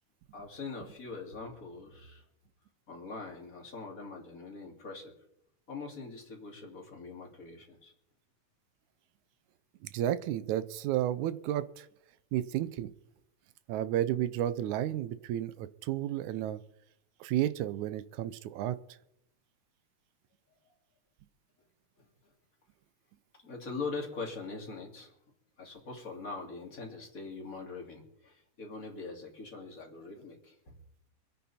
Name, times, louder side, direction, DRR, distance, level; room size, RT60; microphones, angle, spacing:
voice 1, 0.3-2.2 2.9-5.1 5.7-7.9 23.4-25.1 25.6-30.7, left 4 dB, 30° left, 1 dB, 3.0 m, -42 dB
voice 2, 9.8-11.9 12.3-12.9 13.7-16.6 17.2-18.8, right 12 dB, 80° right, 15 dB, 2.1 m, -32 dB
25.5 x 9.4 x 4.3 m, 0.79 s
omnidirectional pair, 3.4 m